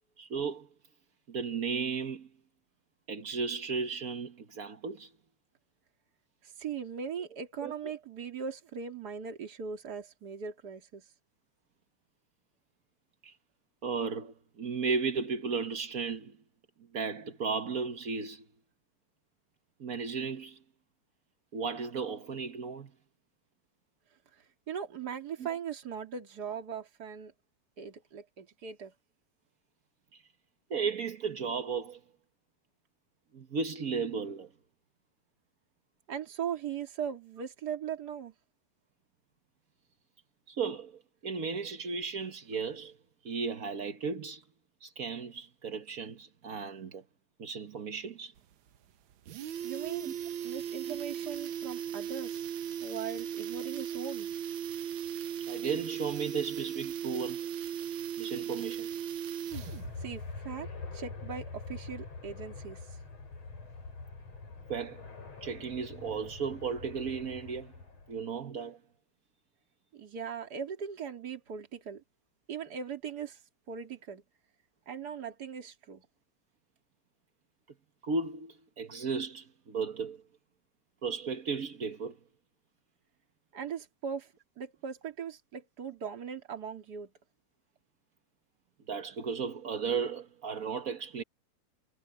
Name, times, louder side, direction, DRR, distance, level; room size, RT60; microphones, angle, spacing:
voice 1, 0.2-0.7 1.3-2.3 3.1-5.1 7.6-7.7 13.2-13.3 13.8-16.4 16.9-18.4 19.8-20.6 21.5-22.9 25.4-25.6 30.1-30.2 30.7-32.0 33.3-34.5 40.5-42.9 43.2-44.4 44.8-47.0 47.4-48.3 50.0-50.1 50.9-51.0 55.5-57.4 58.2-58.9 64.7-65.0 65.4-67.7 68.1-68.8 78.0-80.2 81.0-82.2 88.9-91.2, right 5 dB, 65° right, 0.8 m, -35 dB
voice 2, 6.6-11.0 24.7-27.3 27.8-28.9 36.1-38.3 49.6-50.1 50.4-52.4 52.8-54.3 60.0-60.7 60.9-62.8 69.9-72.0 72.5-73.4 73.7-74.2 74.9-76.0 83.5-84.3 84.6-87.1, right 7 dB, 35° right, 2.9 m, -39 dB
sound 1, 48.4-48.5 48.8-48.9 49.1-60.0 60.2-60.3, right 9 dB, 90° right, 1.1 m, -37 dB
sound 2, 59.5-68.3, left 3 dB, 55° left, 6.2 m, -44 dB
omnidirectional pair, 3.4 m